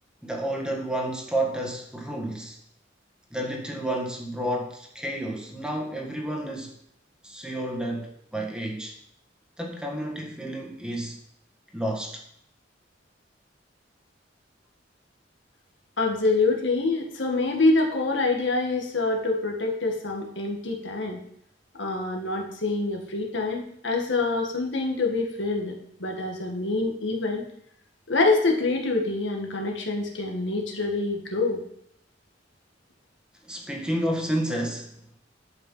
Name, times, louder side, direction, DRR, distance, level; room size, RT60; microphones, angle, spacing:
voice 1, 0.2-2.6 3.3-6.8 7.2-8.9 9.6-11.2 11.7-12.2 33.5-34.9, right 1 dB, 5° right, 1 dB, 1.6 m, -30 dB
voice 2, 16.0-21.2 21.8-25.7 26.0-27.4 28.1-31.6, left 3 dB, 80° left, 2 dB, 1.9 m, -26 dB
11.0 x 5.6 x 5.6 m, 0.69 s
head